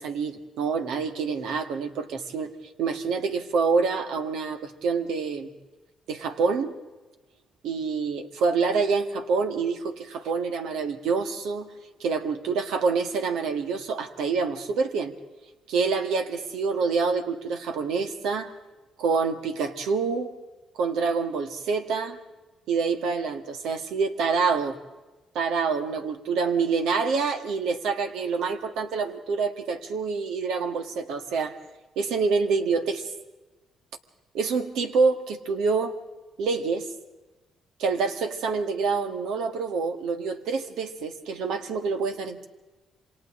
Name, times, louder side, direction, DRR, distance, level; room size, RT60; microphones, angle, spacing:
voice 1, 0.0-2.5 2.8-5.5 6.1-6.7 7.6-11.7 12.0-15.1 15.7-18.5 19.0-20.3 20.8-22.2 22.7-24.8 25.3-31.5 31.9-33.0 34.3-35.9 36.4-36.9 37.8-42.5, right 5 dB, 85° right, 7 dB, 1.7 m, -26 dB
28.0 x 25.5 x 3.8 m, 1.1 s
cardioid pair, 90°, 0 cm